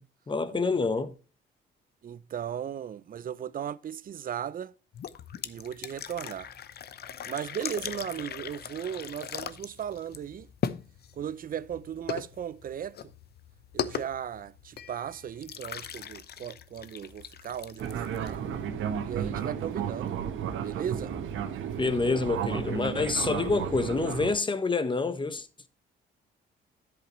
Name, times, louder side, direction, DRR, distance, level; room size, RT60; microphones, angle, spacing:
voice 1, 0.3-1.1 21.8-25.7, left 3 dB, 25° left, 1.1 m, -27 dB
voice 2, 2.0-4.7 5.4-6.5 7.3-10.5 11.1-13.1 13.7-18.5 19.0-20.2 20.6-21.1, right 9 dB, 45° right, 0.6 m, -36 dB
sound 1, 4.9-18.7, left 8 dB, 55° left, 0.7 m, -39 dB
Fixed-wing aircraft airplane, 17.8-24.3, right 8 dB, 80° right, 1.3 m, -33 dB
10.5 x 8.2 x 3.1 m
cardioid pair, 90°, 20 cm